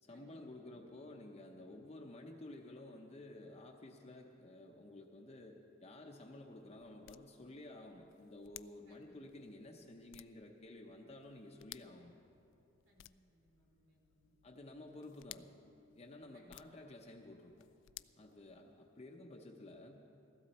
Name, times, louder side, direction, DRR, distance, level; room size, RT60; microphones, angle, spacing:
voice 1, 0.0-12.2 14.4-15.5 16.0-17.7 18.2-20.0, left 1 dB, 35° left, 1 dB, 0.8 m, -53 dB
sound 1, 5.9-19.0, left 16 dB, 85° left, 0.3 m, -60 dB
voice 2, 12.8-14.4 16.3-16.6, equal, 90° right, -1 dB, 2.9 m, -69 dB
15.5 x 14.5 x 4.2 m, 2.7 s
head